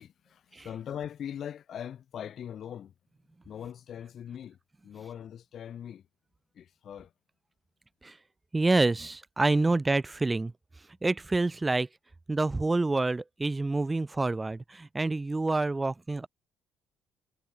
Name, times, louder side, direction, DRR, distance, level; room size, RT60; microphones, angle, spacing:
voice 1, 0.0-2.9 3.4-4.6 4.8-6.1 6.5-7.1, left 9 dB, 45° left, 2.7 m, -41 dB
voice 2, 8.5-10.5 11.0-11.9 12.3-16.3, right 2 dB, 15° right, 1.1 m, -27 dB
cardioid pair, 160°, 0 cm